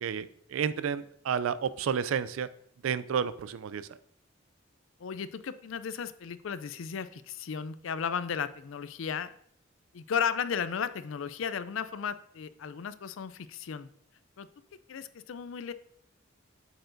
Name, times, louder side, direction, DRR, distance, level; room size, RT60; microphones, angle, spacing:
voice 1, 0.0-2.5 2.8-3.8, right 7 dB, 85° right, 16 dB, 0.4 m, -31 dB
voice 2, 5.0-9.3 9.9-13.9 14.4-14.5 14.9-15.7, left 7 dB, 75° left, 14 dB, 0.4 m, -34 dB
7.7 x 6.8 x 2.6 m, 0.69 s
head